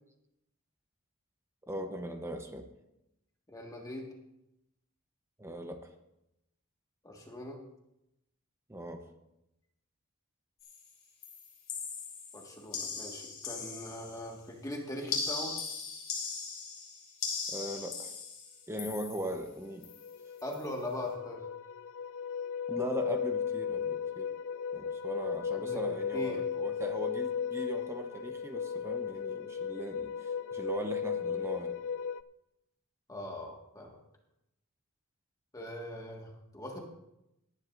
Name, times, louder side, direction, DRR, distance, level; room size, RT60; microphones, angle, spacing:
voice 1, 1.7-2.7 5.4-5.9 8.7-9.0 17.5-18.2 18.7-19.9 22.7-24.3 24.7-31.8, equal, 10° right, 5 dB, 0.8 m, -39 dB
voice 2, 3.5-4.1 7.0-7.6 12.3-15.6 20.4-21.4 25.5-26.4 33.1-34.0 35.5-36.8, left 1 dB, 15° left, 0 dB, 1.7 m, -41 dB
sound 1, 10.6-10.9 11.2-14.3 15.1-19.5 19.8-20.1 20.4-20.7, left 5 dB, 45° left, 3.8 m, -39 dB
sound 2, 19.3-19.4 19.7-32.2, left 7 dB, 65° left, 0.4 m, -35 dB
18.5 x 11.0 x 2.6 m, 0.86 s
head